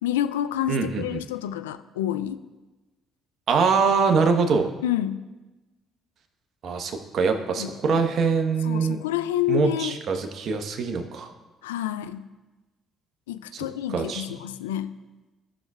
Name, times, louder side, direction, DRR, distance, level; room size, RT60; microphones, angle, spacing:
voice 1, 0.0-2.4 4.8-5.2 7.6-8.0 8.6-10.0 11.6-12.3 13.3-14.9, left 11 dB, 85° left, 12 dB, 0.3 m, -28 dB
voice 2, 0.7-1.2 3.5-4.7 6.6-9.0 9.5-11.3 13.5-13.6 13.9-14.2, right 5 dB, 60° right, 5 dB, 1.0 m, -23 dB
15.0 x 6.2 x 2.4 m, 1.2 s
hypercardioid pair, 50°, 0 cm